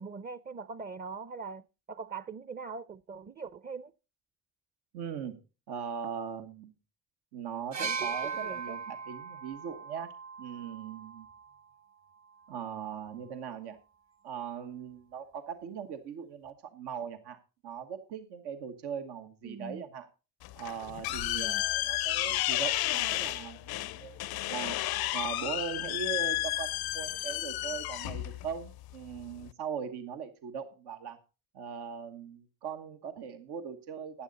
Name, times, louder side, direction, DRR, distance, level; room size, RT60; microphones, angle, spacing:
voice 1, 0.0-3.9 7.8-8.2 8.4-8.8 19.4-19.8 21.3-21.6, right 5 dB, 25° right, 0.6 m, -42 dB
voice 2, 4.9-5.4 5.7-6.7 7.3-10.1 10.4-11.3 12.5-13.8 14.2-17.4 17.6-20.1 20.5-24.8 25.1-31.2 31.5-34.2, right 7 dB, 85° right, 1.3 m, -40 dB
sound 1, 7.7-11.5 12.6-12.7, right 5 dB, 45° right, 1.3 m, -38 dB
sound 2, 20.4-29.5, left 16 dB, 70° left, 0.5 m, -32 dB
14.5 x 9.8 x 4.0 m
supercardioid pair, 60°, 39 cm